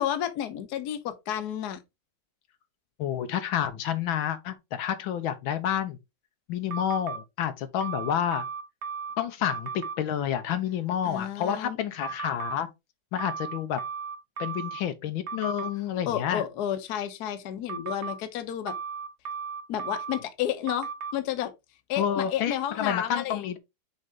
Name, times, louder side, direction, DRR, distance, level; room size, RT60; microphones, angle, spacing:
voice 1, 0.0-1.8 11.0-11.8 16.1-18.7 19.7-21.5 21.9-23.4, left 11 dB, 60° left, 1.3 m, -31 dB
voice 2, 3.0-6.0 6.5-8.5 9.2-12.7 13.1-13.8 14.4-16.4 22.0-23.6, left 9 dB, 80° left, 1.5 m, -29 dB
sound 1, 6.7-7.2 7.8-9.2 9.5-10.0 12.0-12.6 13.2-14.8 15.3-15.7 17.7-18.2 18.7-20.2 20.7-21.1, right 6 dB, 65° right, 0.6 m, -35 dB
6.5 x 4.5 x 3.5 m
omnidirectional pair, 2.2 m